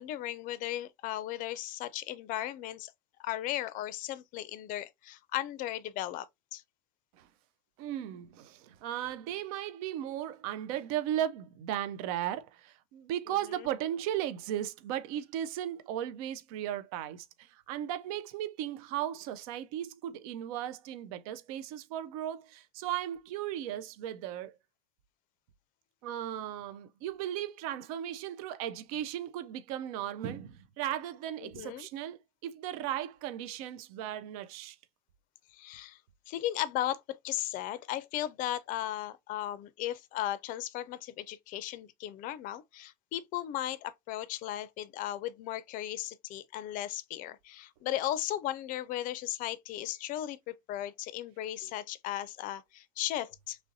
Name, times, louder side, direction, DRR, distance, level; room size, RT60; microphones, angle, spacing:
voice 1, 0.0-2.9 3.2-6.3 6.5-6.6 13.6-13.7 31.4-31.9 35.5-36.0 36.3-37.0 37.2-53.6, left 13 dB, 45° left, 0.4 m, -36 dB
voice 2, 7.8-24.5 26.0-34.8 51.6-51.7, right 11 dB, 70° right, 0.5 m, -36 dB
3.1 x 2.6 x 2.5 m
hypercardioid pair, 100°, 19 cm